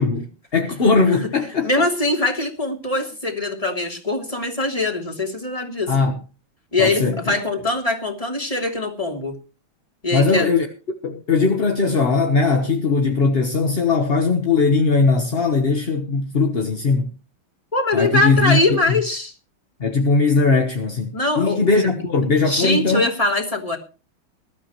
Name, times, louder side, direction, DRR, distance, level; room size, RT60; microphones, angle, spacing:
voice 1, 0.0-1.9 5.9-6.2 6.8-7.3 10.1-10.7 11.0-17.1 17.9-18.6 19.8-23.1, left 4 dB, 35° left, 1.0 m, -19 dB
voice 2, 1.6-5.9 6.7-9.3 10.0-10.5 17.7-19.3 21.1-22.0 22.5-23.8, left 2 dB, 15° left, 3.1 m, -22 dB
21.0 x 13.0 x 3.1 m
omnidirectional pair, 2.4 m